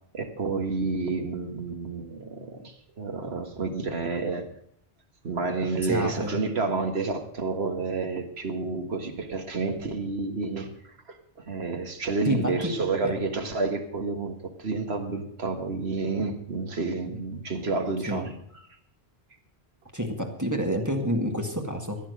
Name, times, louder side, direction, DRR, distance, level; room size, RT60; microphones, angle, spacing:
voice 1, 0.1-4.5 5.2-11.2 11.4-18.3, right 3 dB, 70° right, 5 dB, 1.9 m, -30 dB
voice 2, 5.8-6.4 12.3-12.8 13.0-13.1 17.1-17.2 18.1-18.3 19.9-22.0, equal, 15° right, 3 dB, 1.7 m, -28 dB
14.5 x 10.5 x 6.5 m, 0.66 s
omnidirectional pair, 1.1 m